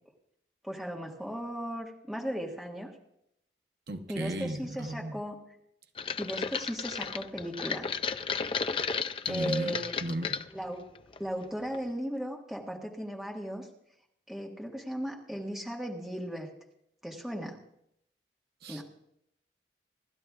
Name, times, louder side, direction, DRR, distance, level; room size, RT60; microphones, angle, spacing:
voice 1, 0.6-2.9 4.1-5.4 6.2-7.9 9.3-10.0 10.5-10.8 11.2-13.7 14.3-16.5 17.0-17.6 18.7-18.8, equal, ahead, -1 dB, 1.6 m, -36 dB
voice 2, 3.9-5.2 9.3-9.8 10.0-10.3 18.6-18.8, right 1 dB, 65° right, 5 dB, 1.0 m, -35 dB
Make Iced Tea, 6.0-10.5 11.0-11.5 11.7-11.8, left 5 dB, 30° left, 0.4 m, -33 dB
26.0 x 12.0 x 2.4 m, 0.76 s
head